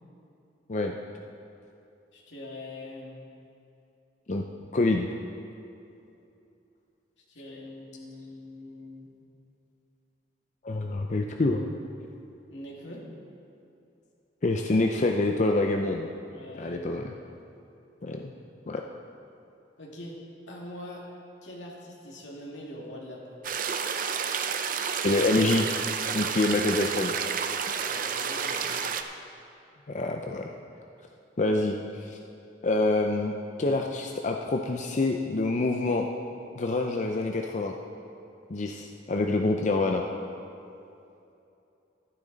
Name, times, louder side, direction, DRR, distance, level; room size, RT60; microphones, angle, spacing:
voice 1, 2.1-3.2 7.3-9.1 12.5-13.0 16.3-16.9 19.8-20.2 20.5-21.0 21.4-23.4 27.8-28.8, left 1 dB, 85° left, -3 dB, 2.2 m, -43 dB
voice 2, 4.7-5.1 10.6-11.7 14.4-16.1 16.6-17.1 18.0-18.3 18.7-18.8 25.0-25.7 26.1-27.1 29.9-30.5 31.4-32.2 32.6-36.1 36.5-37.7 38.5-40.0, left 2 dB, 40° left, 3 dB, 0.5 m, -26 dB
sound 1, 23.4-29.0, right 6 dB, 50° right, 0.5 m, -30 dB
13.5 x 10.5 x 4.0 m, 2.7 s
head